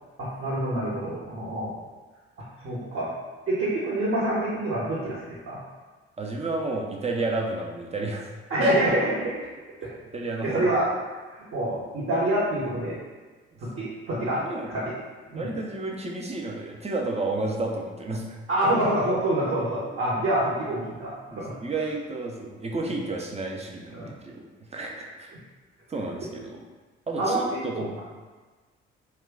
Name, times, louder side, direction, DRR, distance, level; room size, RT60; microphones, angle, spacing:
voice 1, 0.2-1.7 2.6-3.1 3.5-5.6 8.5-9.3 10.4-10.9 11.3-12.9 13.6-14.4 14.7-14.9 15.3-15.5 18.5-21.5 23.9-24.1 27.2-28.0, right 1 dB, 40° right, -8 dB, 1.0 m, -26 dB
voice 2, 6.2-8.3 10.1-10.7 14.3-14.7 15.4-18.4 21.3-24.4 24.7-25.3 25.9-26.6 27.1-28.0, right 2 dB, 20° right, 1 dB, 0.6 m, -31 dB
2.9 x 2.3 x 3.5 m, 1.3 s
figure-of-eight pair, 40°, 32 cm